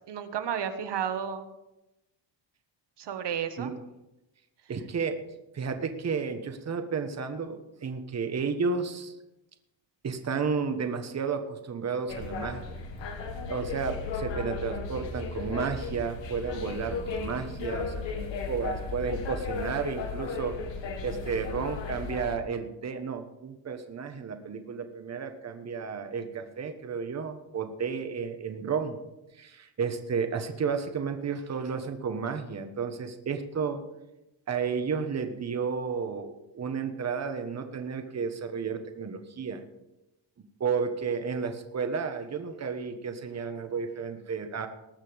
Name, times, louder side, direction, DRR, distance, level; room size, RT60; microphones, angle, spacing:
voice 1, 0.1-1.5 3.0-3.7 16.7-17.1, right 8 dB, 60° right, 8 dB, 1.4 m, -33 dB
voice 2, 4.7-5.2 5.5-9.1 10.0-12.8 13.5-20.6 21.0-29.0 29.4-33.8 34.5-39.6 40.6-44.7, right 5 dB, 35° right, 7 dB, 1.2 m, -32 dB
sound 1, 12.1-22.4, left 4 dB, 65° left, 1.9 m, -35 dB
19.5 x 6.7 x 5.2 m, 0.95 s
cardioid pair, 135°, 48 cm